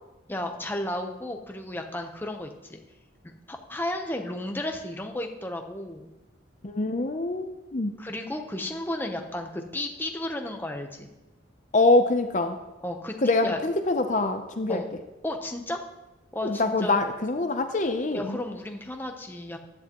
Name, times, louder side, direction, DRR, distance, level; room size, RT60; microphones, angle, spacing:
voice 1, 0.3-2.8 3.2-6.1 8.0-11.1 12.8-13.1 13.4-13.6 14.7-14.9 15.2-15.8 16.3-17.0 18.1-19.6, left 1 dB, 10° left, 3 dB, 0.8 m, -33 dB
voice 2, 6.6-7.9 11.7-12.6 13.2-14.8 16.4-18.4, left 2 dB, 40° left, 6 dB, 0.6 m, -24 dB
15.5 x 11.0 x 3.0 m, 1.0 s
head